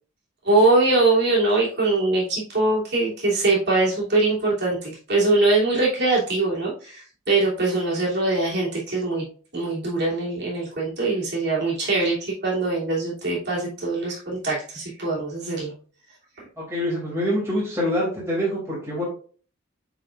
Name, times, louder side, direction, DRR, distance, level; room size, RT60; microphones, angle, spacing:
voice 1, 0.4-9.2 9.5-15.7 16.4-16.5, right 2 dB, 55° right, -7 dB, 2.9 m, -22 dB
voice 2, 16.6-19.0, equal, 15° right, -6 dB, 2.7 m, -25 dB
9.1 x 4.1 x 2.5 m, 0.42 s
head